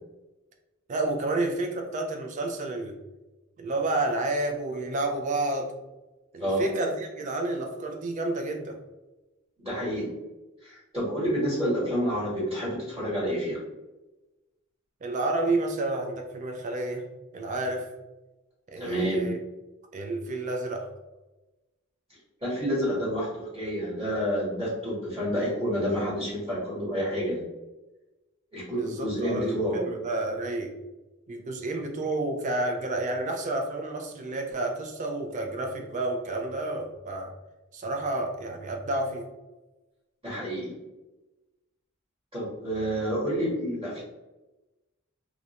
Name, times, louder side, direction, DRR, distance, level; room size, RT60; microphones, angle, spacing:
voice 1, 0.9-3.0 3.6-5.7 6.3-8.8 15.0-17.0 17.3-17.9 18.7-19.4 19.9-20.9 28.7-30.7 31.3-37.3 37.7-39.3, right 2 dB, 35° right, 3 dB, 0.4 m, -30 dB
voice 2, 9.6-10.1 10.6-13.6 18.8-19.3 22.4-27.4 28.5-29.8 40.2-40.7 42.3-44.0, equal, 20° right, -10 dB, 1.1 m, -29 dB
2.4 x 2.1 x 2.8 m, 1.1 s
head